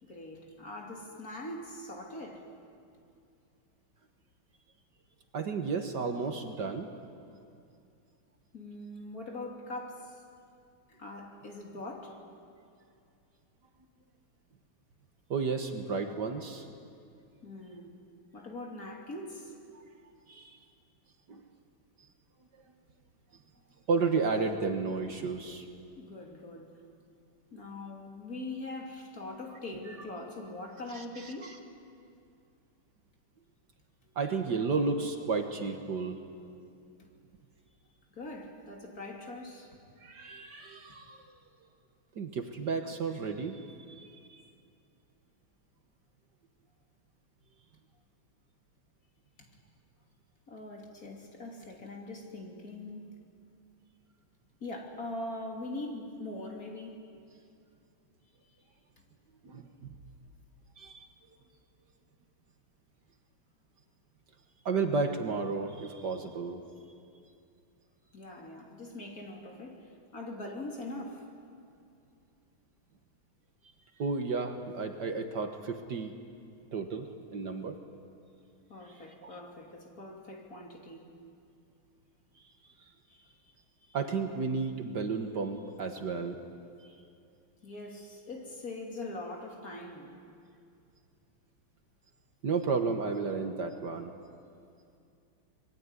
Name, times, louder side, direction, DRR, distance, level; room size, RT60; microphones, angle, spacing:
voice 1, 0.0-2.5 8.5-10.2 10.9-12.2 17.4-18.0 18.3-19.5 25.9-26.8 27.5-31.6 34.0-34.1 37.0-37.1 38.1-39.8 49.4-49.5 50.5-53.2 54.6-57.0 59.0-59.1 68.1-71.3 78.7-81.1 83.1-83.4 83.8-84.0 87.6-90.2, left 2 dB, 40° left, 3.3 m, -42 dB
voice 2, 5.3-6.9 15.3-16.7 19.7-19.8 20.3-20.6 21.3-21.4 23.9-25.7 29.9-30.0 30.9-31.6 34.2-36.2 40.0-41.4 42.2-44.4 59.4-59.9 60.8-61.1 64.7-66.6 74.0-76.2 76.7-77.8 79.2-79.3 83.9-86.4 92.4-94.1, right 4 dB, 55° right, 1.9 m, -32 dB
26.0 x 21.5 x 9.7 m
omnidirectional pair, 2.3 m